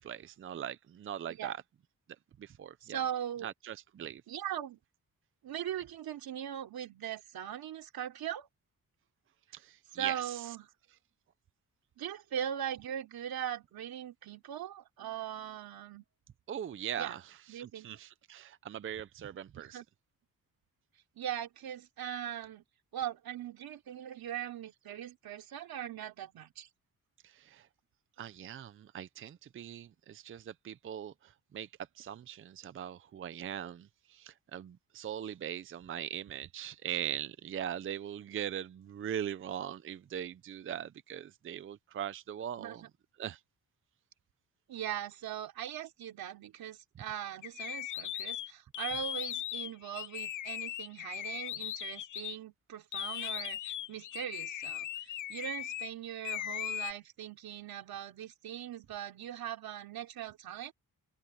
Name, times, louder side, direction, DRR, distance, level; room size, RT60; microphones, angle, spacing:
voice 1, 0.0-1.6 2.4-3.0 3.4-4.2 9.5-10.6 16.5-19.8 27.2-27.7 28.2-31.7 31.9-42.8 43.2-43.4, right 10 dB, 35° right, 0.5 m, -41 dB
voice 2, 2.8-3.5 4.3-4.8 5.4-8.5 10.0-10.7 12.0-16.0 17.0-17.2 17.5-18.0 19.6-19.8 21.2-22.6 22.9-26.7 42.6-42.8 44.7-60.7, right 10 dB, 80° right, 3.3 m, -40 dB
sound 1, 47.4-52.4 52.9-55.9 56.2-56.9, left 12 dB, 60° left, 0.7 m, -38 dB
wide cardioid pair, 170°, 36 cm